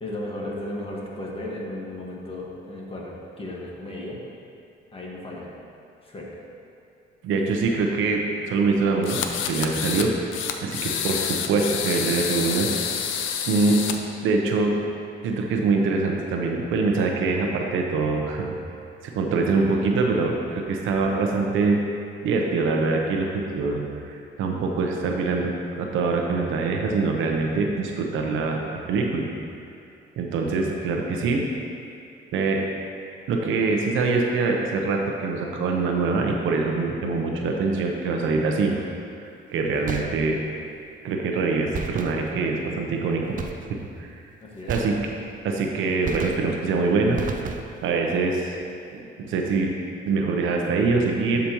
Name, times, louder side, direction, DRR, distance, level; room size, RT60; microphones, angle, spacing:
voice 1, 0.0-4.2 4.9-5.5 6.0-6.4 44.4-44.8 48.8-48.9, left 1 dB, 30° left, -3 dB, 1.6 m, -35 dB
voice 2, 7.2-12.7 13.5-13.8 14.2-14.7 15.2-18.5 19.0-21.8 22.2-23.8 24.1-28.6 28.9-29.3 30.2-31.4 32.3-32.6 33.3-38.8 39.5-40.4 41.0-43.4 43.7-44.1 44.7-45.0 45.4-47.2 47.8-48.6 48.9-49.7 50.1-51.5, right 3 dB, 85° right, 1 dB, 0.8 m, -24 dB
sound 1, 9.0-10.1 10.3-14.0, left 8 dB, 80° left, 0.6 m, -28 dB
sound 2, 39.9-40.6 41.7-42.7 43.4-44.0 44.7-45.5 46.1-46.8 47.2-48.0, right 6 dB, 40° right, 0.5 m, -34 dB
11.5 x 5.1 x 3.0 m, 2.6 s
cardioid pair, 90°, 20 cm